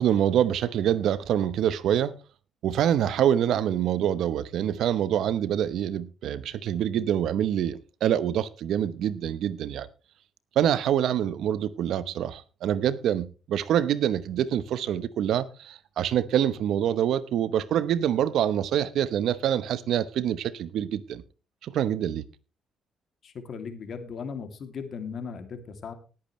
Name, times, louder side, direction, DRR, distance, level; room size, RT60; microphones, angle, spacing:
voice 1, 0.0-2.2 2.6-9.9 10.6-21.2 21.6-22.2, right 10 dB, 75° right, 0.9 m, -26 dB
voice 2, 23.2-25.9, left 6 dB, 55° left, 2.6 m, -37 dB
19.0 x 8.8 x 3.2 m
cardioid pair, 90°, 0 cm